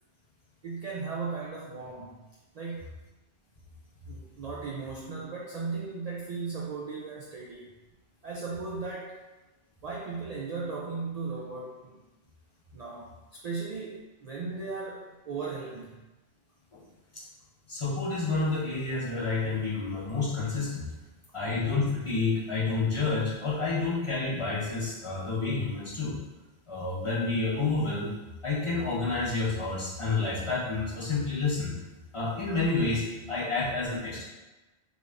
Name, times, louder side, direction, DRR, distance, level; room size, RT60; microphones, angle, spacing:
voice 1, 0.6-2.2 2.5-2.9 4.1-7.7 8.2-9.2 9.8-12.0 12.7-16.0, right 4 dB, 75° right, -4 dB, 0.3 m, -37 dB
voice 2, 17.7-20.9 21.3-26.1 26.7-28.1 28.4-31.7 32.1-34.2, left 3 dB, 30° left, -8 dB, 0.7 m, -29 dB
3.4 x 2.5 x 3.3 m, 1.1 s
omnidirectional pair, 1.2 m